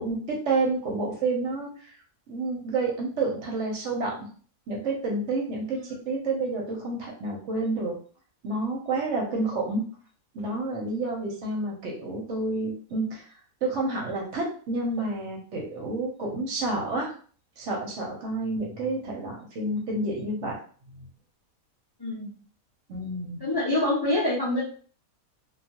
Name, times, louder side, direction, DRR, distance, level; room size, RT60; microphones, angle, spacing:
voice 1, 0.0-1.9 2.3-4.3 4.7-5.8 6.0-8.0 8.4-9.8 10.3-13.3 13.6-17.1 17.6-20.6 20.9-21.1 22.9-23.4, right 2 dB, 60° right, -1 dB, 0.9 m, -29 dB
voice 2, 22.0-22.3 23.4-24.6, left 1 dB, 35° left, -6 dB, 0.3 m, -26 dB
2.3 x 2.3 x 2.8 m, 0.43 s
omnidirectional pair, 1.5 m